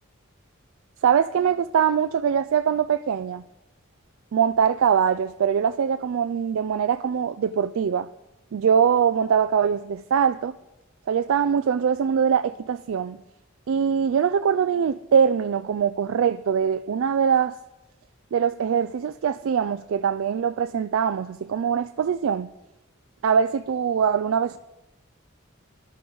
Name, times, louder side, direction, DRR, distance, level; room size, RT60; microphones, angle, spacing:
voice 1, 1.0-3.4 4.3-8.1 8.5-10.5 11.1-13.2 13.7-17.6 18.3-22.5 23.2-24.6, right 7 dB, 75° right, 0.3 m, -22 dB
18.0 x 12.0 x 3.9 m
head